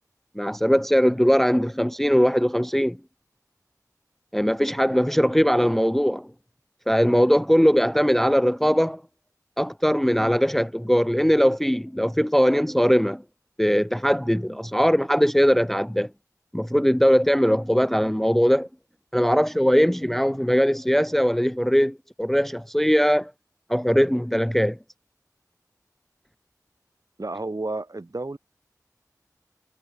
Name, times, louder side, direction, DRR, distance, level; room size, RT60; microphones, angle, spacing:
voice 1, 0.4-3.0 4.3-6.3 6.9-9.0 9.6-13.2 13.6-16.1 16.5-18.7 19.1-23.3 23.7-24.8, equal, 5° left, 0.4 m, -20 dB
voice 2, 27.2-28.4, right 2 dB, 60° right, 7.1 m, -31 dB
wide cardioid pair, 40°, 7 cm